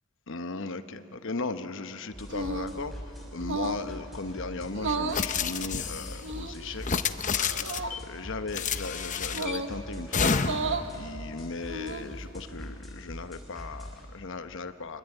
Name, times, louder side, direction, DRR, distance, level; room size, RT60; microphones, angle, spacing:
voice 1, 0.3-6.9 7.3-15.0, left 3 dB, 60° left, 10 dB, 1.0 m, -37 dB
sound 1, 2.1-14.0, equal, ahead, 6.0 m, -43 dB
sound 2, 2.3-2.8 3.4-3.9 4.7-5.3 6.2-6.8 7.6-8.0 9.3-9.8 10.4-10.9 11.6-12.2, right 3 dB, 60° right, 1.2 m, -33 dB
sound 3, 5.1-6.2 6.8-8.0 8.5-9.6 10.1-10.8, left 6 dB, 35° left, 0.8 m, -29 dB
25.0 x 24.0 x 9.1 m, 2.8 s
head